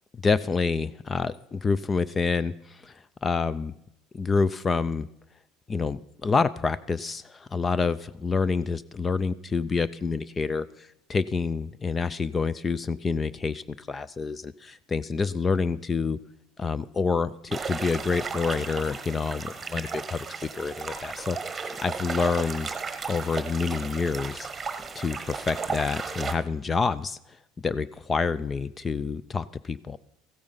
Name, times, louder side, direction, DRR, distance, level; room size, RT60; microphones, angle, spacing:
voice 1, 0.2-2.9 3.2-3.7 4.1-5.1 5.7-16.2 16.6-20.3 20.5-22.7 23.1-24.5 25.0-27.2 27.6-30.0, left 4 dB, 25° left, 18 dB, 0.4 m, -27 dB
sound 1, 17.5-26.3, right 5 dB, 20° right, 1.2 m, -35 dB
15.0 x 8.7 x 5.6 m, 0.78 s
supercardioid pair, 115°, 0 cm